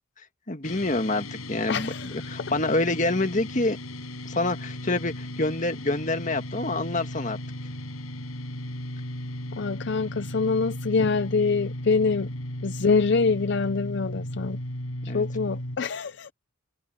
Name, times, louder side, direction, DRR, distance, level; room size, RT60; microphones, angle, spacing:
voice 1, 0.5-3.8 4.3-7.4 15.0-15.2, left 2 dB, 35° left, 1.8 m, -27 dB
sound 1, 0.6-15.8, left 1 dB, 85° left, 6.4 m, -36 dB
voice 2, 1.7-2.2 9.6-12.3 12.6-14.6 15.0-16.3, left 4 dB, 55° left, 0.5 m, -25 dB
head